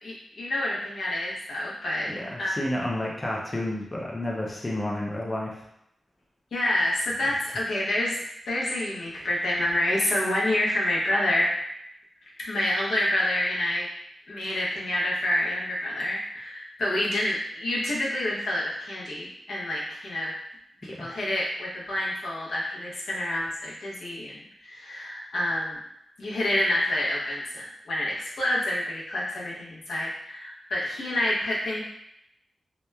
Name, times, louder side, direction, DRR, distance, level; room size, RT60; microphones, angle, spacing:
voice 1, 0.0-2.1 2.4-2.5 6.5-8.1 8.5-11.5 12.4-13.9 14.3-20.3 20.8-25.8 26.2-31.8, left 1 dB, 85° left, -5 dB, 0.7 m, -28 dB
voice 2, 2.1-5.6 20.9-21.1, left 1 dB, 20° left, -3 dB, 0.4 m, -31 dB
2.8 x 2.1 x 2.2 m, 0.78 s
wide cardioid pair, 130°, 0 cm